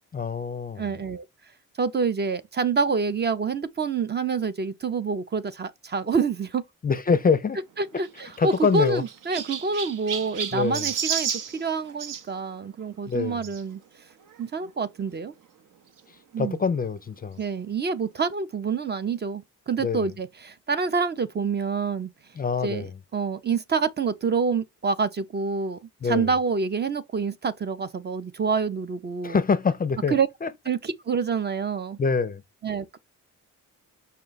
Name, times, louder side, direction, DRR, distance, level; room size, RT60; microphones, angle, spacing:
voice 1, 0.1-0.9 6.8-7.6 8.4-9.0 10.5-10.9 13.1-13.4 16.4-17.4 19.8-20.1 22.4-22.9 26.0-26.3 29.2-30.1 30.4-30.5 32.0-32.4, left 5 dB, 30° left, 0.4 m, -25 dB
voice 2, 0.8-1.3 1.8-6.6 7.8-13.8 14.4-15.3 16.3-16.6 17.4-22.1 22.6-22.9 23.1-29.4 30.1-30.3 30.7-32.0 32.6-33.0, right 5 dB, 30° right, 0.5 m, -27 dB
Chirp tweet, 7.9-12.2 13.4-13.6 14.3-14.4 14.6-14.7 16.0-16.1, right 8 dB, 70° right, 0.7 m, -32 dB
5.5 x 2.2 x 3.9 m
cardioid pair, 80°, 33 cm